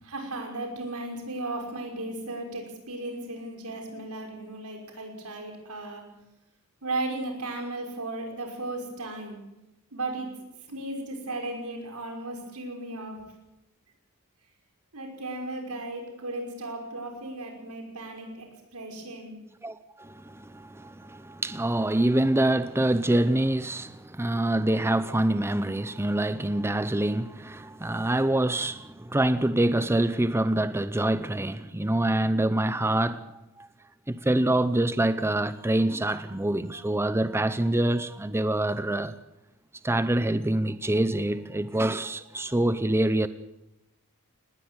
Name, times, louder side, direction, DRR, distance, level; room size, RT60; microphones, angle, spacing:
voice 1, 0.1-6.0 6.8-9.4 9.9-10.3 10.7-13.2 14.9-18.5 18.7-19.4, right 2 dB, 85° right, 5.7 m, -35 dB
voice 2, 19.6-33.3 33.6-33.7 34.1-39.1 39.8-43.3, right 1 dB, 10° right, 0.6 m, -25 dB
19.5 x 18.5 x 8.1 m
head